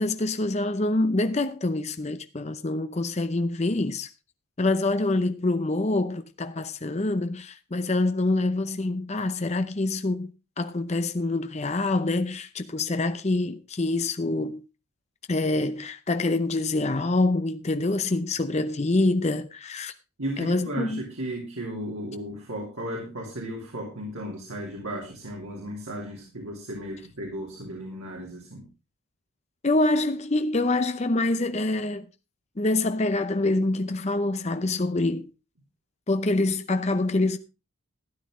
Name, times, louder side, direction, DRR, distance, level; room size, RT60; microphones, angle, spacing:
voice 1, 0.0-4.1 4.6-10.3 10.6-14.6 15.3-19.9 20.4-21.0 29.6-32.1 32.6-35.3 36.1-37.4, left 2 dB, 30° left, 0.6 m, -26 dB
voice 2, 20.2-28.7, right 1 dB, 90° right, 2.9 m, -35 dB
12.5 x 10.0 x 3.7 m
head